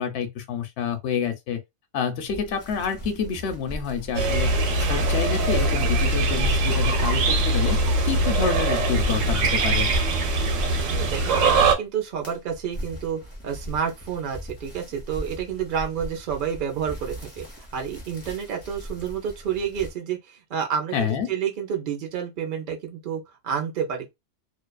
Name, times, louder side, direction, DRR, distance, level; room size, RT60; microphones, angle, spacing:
voice 1, 0.0-1.6 1.9-7.8 8.0-9.9 20.9-21.3, left 7 dB, 70° left, 0.8 m, -28 dB
sound 1, 2.3-11.6 12.0-19.9, equal, 15° left, 0.8 m, -36 dB
sound 2, 4.1-11.7, right 2 dB, 90° right, 1.0 m, -22 dB
voice 2, 10.9-24.1, right 8 dB, 50° right, 0.7 m, -30 dB
2.5 x 2.3 x 2.2 m
omnidirectional pair, 1.3 m